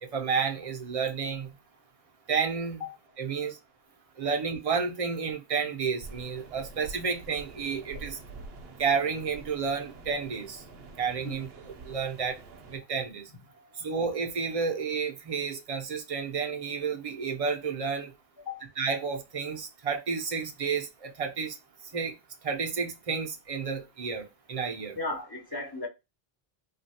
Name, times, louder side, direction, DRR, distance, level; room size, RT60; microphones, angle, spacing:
voice 1, 0.0-1.5 2.3-2.8 3.2-3.6 4.2-8.2 8.8-10.6 11.0-12.4 12.7-13.3 13.8-18.1 18.8-21.6 21.9-22.2 22.4-25.0, right 5 dB, 40° right, 0.6 m, -31 dB
sound 1, 6.0-12.8, right 3 dB, 75° right, 0.9 m, -47 dB
voice 2, 25.0-25.9, left 3 dB, 25° left, 0.7 m, -35 dB
3.2 x 2.3 x 2.7 m
omnidirectional pair, 1.0 m